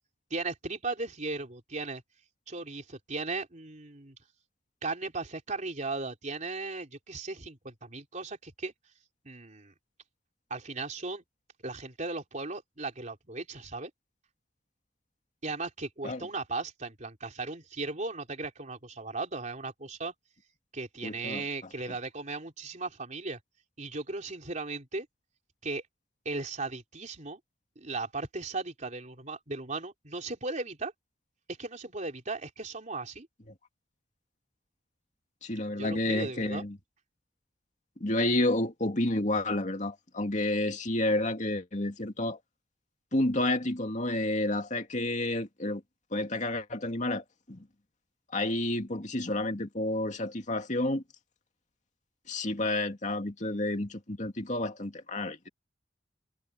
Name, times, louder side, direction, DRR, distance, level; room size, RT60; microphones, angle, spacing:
voice 1, 0.3-2.0 2.5-4.2 4.8-8.7 9.2-9.7 10.5-11.2 11.6-13.9 15.4-20.1 20.7-23.4 23.8-25.1 25.6-25.8 26.3-27.4 27.8-30.9 31.5-33.3 35.8-36.6, right 3 dB, 45° right, 3.5 m, -37 dB
voice 2, 21.0-21.4 35.4-36.8 38.0-42.4 43.1-45.8 46.1-47.6 48.3-51.0 52.3-55.5, left 1 dB, 45° left, 2.4 m, -30 dB
head